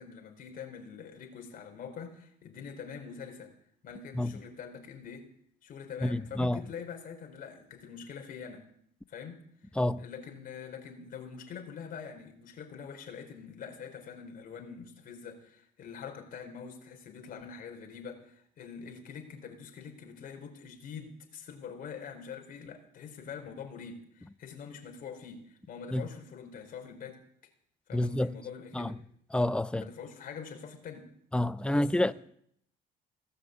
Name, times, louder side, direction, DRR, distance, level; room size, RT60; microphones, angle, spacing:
voice 1, 0.0-3.5 3.8-5.3 5.6-8.6 9.1-9.4 10.0-27.2 27.9-29.0 29.8-31.1 31.7-32.1, left 6 dB, 55° left, 4.5 m, -44 dB
voice 2, 6.0-6.6 9.8-10.0 25.9-26.0 27.9-28.4 28.7-28.9 29.3-29.9 31.3-32.1, left 1 dB, 5° left, 0.7 m, -28 dB
17.5 x 10.0 x 8.3 m
cardioid pair, 110°, 17 cm